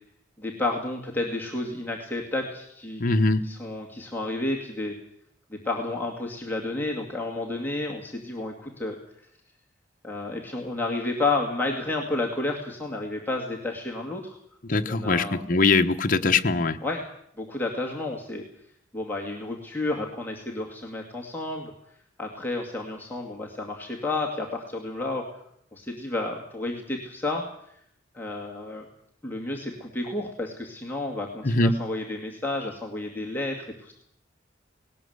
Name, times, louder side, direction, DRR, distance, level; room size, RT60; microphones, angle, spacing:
voice 1, 0.4-3.0 3.4-5.0 5.5-9.0 10.0-14.4 14.9-15.4 16.8-17.0 17.4-18.4 18.9-21.7 22.2-25.3 25.7-27.4 28.1-28.8 29.2-33.9, left 2 dB, 10° left, -1 dB, 2.4 m, -31 dB
voice 2, 3.0-3.5 14.6-16.8 31.4-31.8, left 3 dB, 45° left, 5 dB, 1.2 m, -22 dB
19.5 x 18.0 x 8.1 m, 0.70 s
head